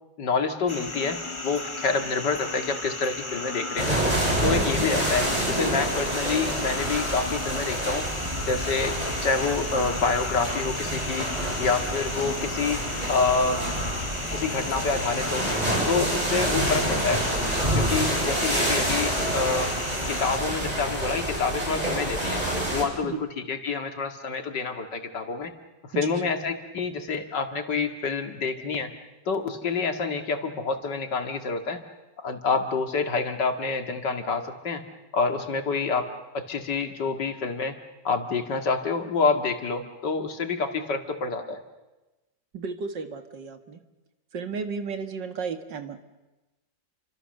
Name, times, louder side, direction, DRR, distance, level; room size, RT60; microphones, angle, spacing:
voice 1, 0.2-3.9 4.4-8.1 8.4-11.3 11.6-12.8 13.1-13.7 14.3-15.5 15.9-17.3 17.7-19.7 20.1-22.4 22.7-23.1 23.5-25.5 26.0-28.9 29.3-31.8 32.2-34.8 35.1-36.1 36.3-37.8 38.0-41.6, left 4 dB, 75° left, 6 dB, 2.7 m, -27 dB
sound 1, 0.7-20.4, left 2 dB, 15° left, 1.5 m, -35 dB
sound 2, 3.8-22.8, right 1 dB, 20° right, 5.0 m, -28 dB
voice 2, 25.9-26.3 42.5-43.8 44.3-46.0, right 5 dB, 80° right, 8 dB, 2.5 m, -33 dB
30.0 x 25.5 x 6.7 m, 1.1 s
omnidirectional pair, 1.9 m